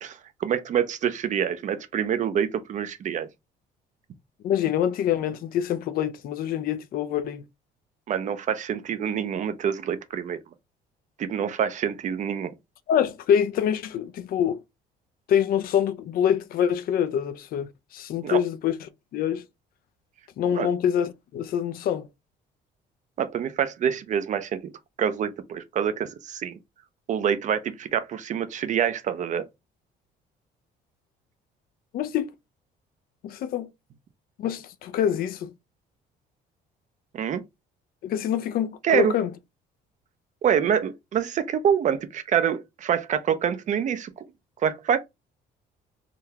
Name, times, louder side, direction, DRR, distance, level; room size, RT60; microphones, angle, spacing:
voice 1, 0.0-3.3 8.1-10.4 11.2-12.5 18.2-18.4 20.5-20.7 23.2-24.7 25.0-26.6 27.1-29.4 37.1-37.4 38.8-39.2 40.4-44.1 44.6-45.0, right 8 dB, 45° right, 0.5 m, -26 dB
voice 2, 4.4-7.4 12.9-14.6 15.3-18.8 19.1-19.4 20.4-22.1 31.9-32.3 33.2-33.7 34.4-35.5 38.0-39.3, left 9 dB, 60° left, 0.5 m, -25 dB
3.8 x 2.2 x 2.7 m
cardioid pair, 110°, 17 cm